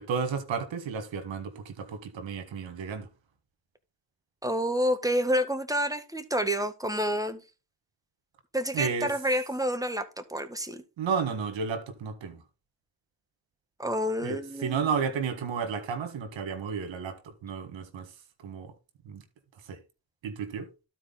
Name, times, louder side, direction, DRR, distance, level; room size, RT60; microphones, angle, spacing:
voice 1, 0.0-3.1 8.7-9.1 11.0-12.4 14.2-18.1 18.4-18.7 19.0-19.2 19.7-19.8 20.2-20.7, right 6 dB, 75° right, 1.7 m, -32 dB
voice 2, 4.4-7.4 8.5-10.8 13.8-14.8, equal, 10° right, 1.7 m, -28 dB
12.5 x 4.4 x 3.9 m
supercardioid pair, 40°, 46 cm